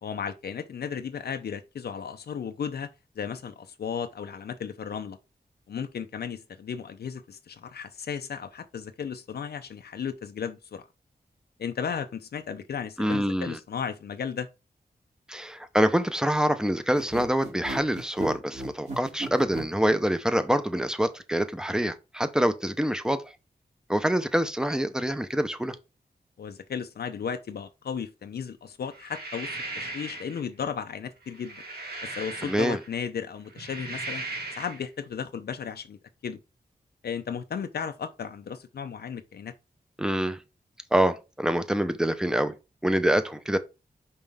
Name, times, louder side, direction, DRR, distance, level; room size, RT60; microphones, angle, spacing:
voice 1, 0.0-2.9 3.2-5.2 5.7-10.8 11.6-14.5 26.4-31.6 32.0-34.2 34.5-36.4 37.0-39.5, left 7 dB, 85° left, 0.6 m, -35 dB
voice 2, 13.0-13.6 15.3-23.2 23.9-25.8 32.4-32.8 40.0-40.4 40.9-42.5 42.8-43.6, right 1 dB, 5° right, 0.8 m, -25 dB
sound 1, 16.9-19.7, right 2 dB, 45° right, 2.6 m, -35 dB
sound 2, 28.9-30.4 31.2-32.9 33.4-34.8, right 2 dB, 80° right, 1.8 m, -37 dB
5.5 x 5.3 x 3.6 m
wide cardioid pair, 90°, 16 cm